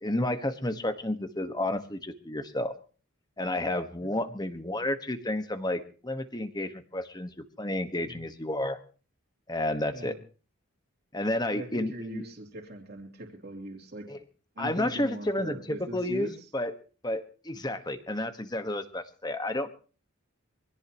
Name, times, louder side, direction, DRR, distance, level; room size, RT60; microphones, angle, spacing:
voice 1, 0.0-2.7 3.4-8.8 9.5-10.2 11.1-12.2 14.1-14.2 14.6-16.3 16.5-16.7 17.0-19.7, left 1 dB, 20° left, 9 dB, 1.3 m, -31 dB
voice 2, 4.0-4.3 8.0-8.2 9.9-10.2 11.5-14.1 14.5-16.5, right 1 dB, 45° right, 0 dB, 3.0 m, -41 dB
24.5 x 17.0 x 3.0 m, 0.38 s
head